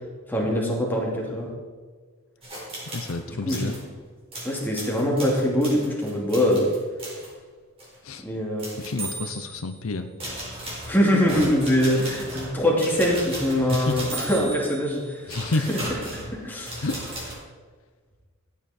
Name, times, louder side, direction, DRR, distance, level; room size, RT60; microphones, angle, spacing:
voice 1, 0.3-1.5 3.3-3.7 4.4-6.7 8.2-8.7 10.8-15.3 15.7-15.8 16.3-16.7, equal, 10° left, -3 dB, 2.6 m, -23 dB
sound 1, 2.4-3.2 3.5-3.8 4.3-7.3 7.8-8.0 8.6-9.8 10.2-17.3, right 1 dB, 25° right, 4.1 m, -36 dB
voice 2, 2.9-3.8 8.0-8.2 8.8-10.1 13.7-14.0 15.3-15.7 16.8-17.1, left 3 dB, 75° left, 8 dB, 0.8 m, -29 dB
14.5 x 9.3 x 4.4 m, 1.5 s
head